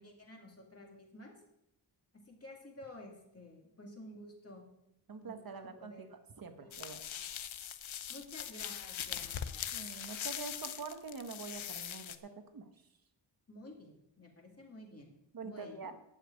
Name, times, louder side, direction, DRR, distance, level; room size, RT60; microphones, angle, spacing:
voice 1, 0.0-1.3 2.1-4.7 5.2-6.1 6.6-6.9 8.1-9.7 13.5-15.1 15.4-15.9, left 1 dB, 30° left, 0 dB, 2.2 m, -52 dB
voice 2, 5.1-6.1 6.4-7.0 9.7-12.7 15.3-15.9, right 5 dB, 50° right, 7 dB, 1.3 m, -45 dB
sound 1, 6.7-12.2, left 9 dB, 85° left, 0.8 m, -41 dB
12.0 x 5.8 x 8.2 m, 0.84 s
wide cardioid pair, 180°, 46 cm